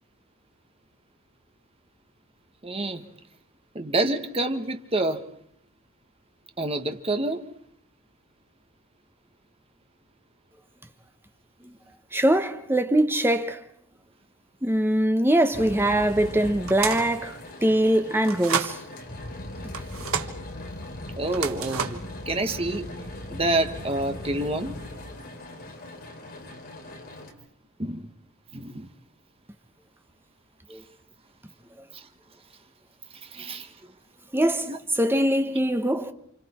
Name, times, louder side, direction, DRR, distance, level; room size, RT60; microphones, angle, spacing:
voice 1, 2.6-3.0 3.7-5.2 6.6-7.4 21.2-22.0 22.3-22.9 23.3-24.7 27.8-28.1 28.5-28.9 33.2-33.7 34.7-34.8, right 2 dB, 25° right, 1.4 m, -27 dB
voice 2, 12.1-13.6 14.6-18.8 30.7-30.8 33.4-33.5 34.3-36.1, right 1 dB, 10° right, 1.1 m, -23 dB
sound 1, 15.5-27.3, left 1 dB, 50° left, 3.5 m, -39 dB
sound 2, 16.7-17.2 18.2-18.8 19.7-20.3 21.3-22.1, right 6 dB, 85° right, 1.5 m, -30 dB
29.5 x 27.0 x 4.4 m
head